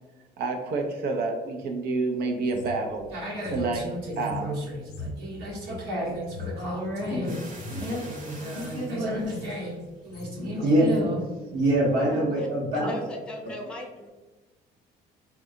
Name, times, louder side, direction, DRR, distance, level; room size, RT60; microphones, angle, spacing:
voice 1, 0.4-3.1 3.5-3.9 4.2-4.6, right 3 dB, 70° right, 2 dB, 0.5 m, -28 dB
sound 1, 2.4-7.2 7.5-7.9 8.4-8.8 9.1-9.5 9.9-10.4 10.7-11.1 11.6-11.8, left 3 dB, 85° left, 0.6 m, -42 dB
voice 2, 3.1-7.4 7.7-9.7 10.0-11.2 11.5-12.9, right 1 dB, 90° right, -4 dB, 1.1 m, -28 dB
sound 2, 7.3-10.1 10.5-11.0 11.6-11.8 12.1-12.2, right 2 dB, 50° right, 0.8 m, -45 dB
voice 3, 12.7-14.1, left 1 dB, 5° left, 0 dB, 0.6 m, -39 dB
3.6 x 2.2 x 2.6 m, 1.2 s
cardioid pair, 110°, 17 cm